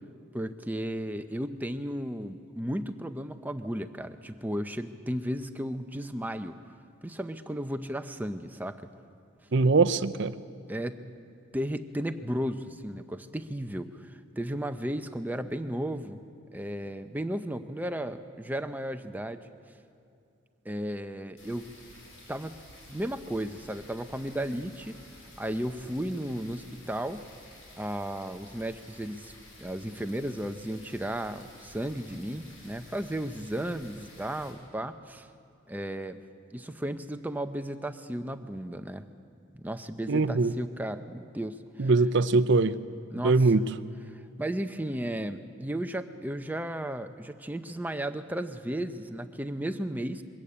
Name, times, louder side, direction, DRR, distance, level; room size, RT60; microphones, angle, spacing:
voice 1, 0.3-6.6 7.0-8.8 10.7-11.0 11.5-16.2 16.5-19.4 20.6-21.7 22.3-22.5 22.9-25.0 25.4-27.2 27.8-29.3 29.6-35.3 35.7-36.2 36.5-39.0 39.6-41.9 43.1-43.5 44.1-50.2, right 1 dB, 10° right, 9 dB, 0.6 m, -34 dB
voice 2, 9.5-10.3 40.1-40.5 41.8-42.8 43.2-43.6, right 3 dB, 55° right, 12 dB, 0.6 m, -22 dB
sound 1, 21.4-34.5, left 1 dB, 75° left, 5.8 m, -52 dB
22.5 x 13.5 x 8.6 m, 2.5 s
head